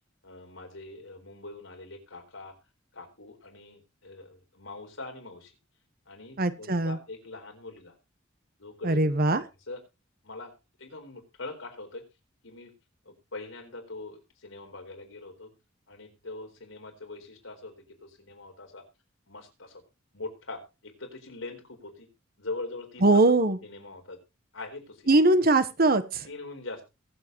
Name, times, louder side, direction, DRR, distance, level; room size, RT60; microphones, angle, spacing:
voice 1, 0.2-2.5 2.9-5.5 6.1-7.9 8.6-9.8 10.2-10.5 10.8-12.0 12.4-12.7 13.1-15.5 15.9-18.8 19.3-19.8 20.1-22.1 22.4-24.2 24.5-25.2 26.3-26.8, left 2 dB, 90° left, 3 dB, 4.4 m, -42 dB
voice 2, 6.4-7.0 8.8-9.4 23.0-23.6 25.1-26.2, right 2 dB, 50° right, 12 dB, 1.2 m, -21 dB
23.0 x 7.7 x 3.0 m, 0.27 s
head